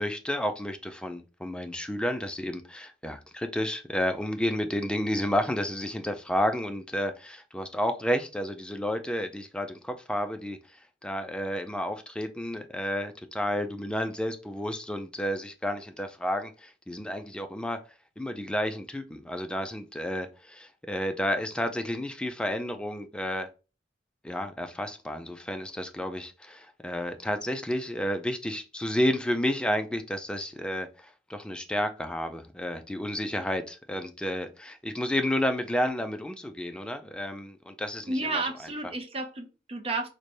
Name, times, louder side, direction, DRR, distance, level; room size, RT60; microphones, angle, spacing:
voice 1, 0.0-10.6 11.0-17.8 18.2-23.5 24.2-38.5, equal, 5° left, 0.3 m, -31 dB
voice 2, 38.1-40.1, right 2 dB, 30° right, 0.6 m, -32 dB
3.2 x 2.2 x 3.9 m
head